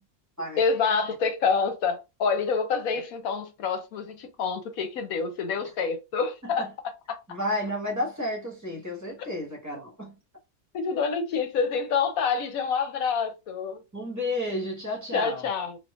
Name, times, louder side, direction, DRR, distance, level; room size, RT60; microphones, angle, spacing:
voice 1, 0.6-6.7 7.1-7.2 10.7-13.8 15.1-15.8, left 5 dB, 85° left, 1.2 m, -27 dB
voice 2, 7.3-10.2 13.9-15.5, left 1 dB, 10° right, 1.4 m, -31 dB
3.6 x 2.8 x 2.4 m
omnidirectional pair, 1.5 m